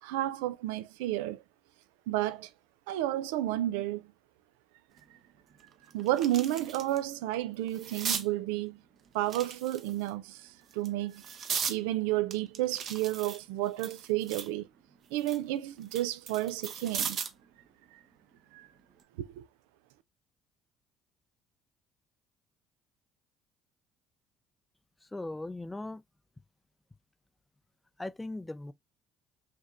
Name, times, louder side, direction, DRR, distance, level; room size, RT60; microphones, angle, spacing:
voice 1, 0.0-1.4 2.1-2.5 2.9-4.1 5.9-8.8 9.1-11.2 11.5-14.7 15.1-17.2 17.9-18.0 18.5-18.7 19.2-19.4, right 14 dB, 90° right, 0.3 m, -31 dB
sound 1, 5.0-5.1 5.6-7.0 7.3-8.3 9.2-10.1 10.7-11.8 12.3-14.6 15.0-17.4 18.8-19.0, right 7 dB, 55° right, 0.8 m, -37 dB
voice 2, 25.0-26.0 28.0-28.7, left 2 dB, 15° left, 0.4 m, -38 dB
5.1 x 2.9 x 2.4 m
supercardioid pair, 70°, 0 cm